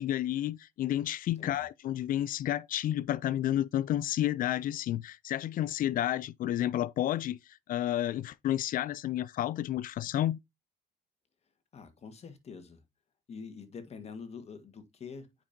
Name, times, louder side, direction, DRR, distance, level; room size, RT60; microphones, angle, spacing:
voice 1, 0.0-10.4, left 12 dB, 55° left, 0.4 m, -31 dB
voice 2, 11.7-12.8 13.3-15.3, left 5 dB, 40° left, 1.7 m, -45 dB
8.7 x 5.2 x 2.7 m
cardioid pair, 110°, 17 cm